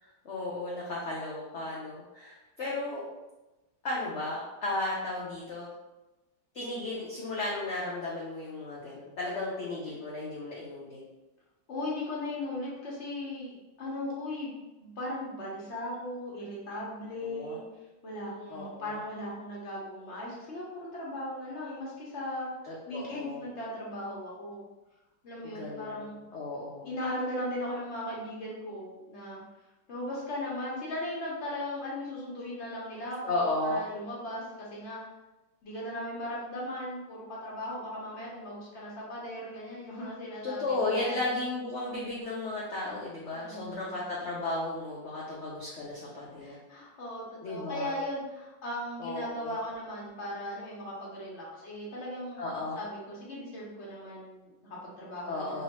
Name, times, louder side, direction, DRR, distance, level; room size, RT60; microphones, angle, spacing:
voice 1, 0.0-3.0 3.8-5.7 6.5-11.0 17.2-17.6 18.5-19.0 22.6-23.5 25.4-26.9 33.2-33.8 40.4-46.6 47.4-47.9 49.0-49.6 52.4-52.8 55.3-55.6, left 2 dB, 90° left, -5 dB, 0.6 m, -34 dB
voice 2, 11.7-14.5 14.8-17.6 18.0-22.5 22.9-24.6 25.2-26.2 26.8-29.4 29.9-35.0 35.6-41.2 43.3-44.0 46.4-55.6, left 1 dB, 50° left, -4 dB, 1.0 m, -38 dB
3.1 x 3.0 x 2.9 m, 1.0 s
omnidirectional pair, 2.0 m